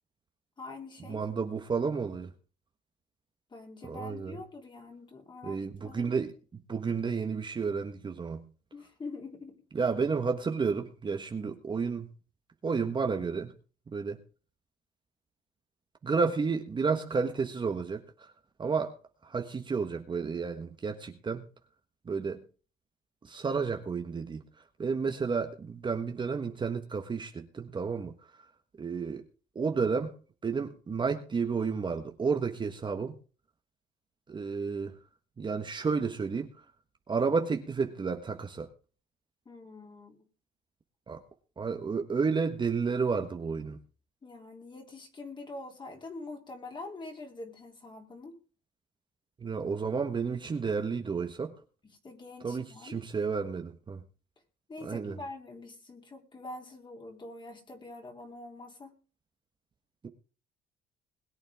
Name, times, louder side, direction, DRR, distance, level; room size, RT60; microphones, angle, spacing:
voice 1, 0.6-1.2 3.5-6.1 8.7-9.7 39.5-40.2 44.2-48.4 51.8-53.0 54.7-58.9, left 2 dB, 25° left, 2 dB, 3.7 m, -45 dB
voice 2, 1.1-2.3 3.8-4.4 5.4-6.3 6.7-8.5 9.7-12.1 12.6-13.5 13.9-14.2 16.0-18.3 18.6-19.0 19.2-21.5 22.0-22.4 23.2-24.4 24.8-28.1 28.8-29.2 29.5-30.1 30.4-33.1 34.3-34.9 35.4-36.5 37.1-38.7 41.1-41.2 41.6-43.8 49.4-51.5 52.4-54.0 54.8-55.2, right 5 dB, 30° right, 5 dB, 1.4 m, -31 dB
21.0 x 8.7 x 3.7 m, 0.37 s
cardioid pair, 110°, 17 cm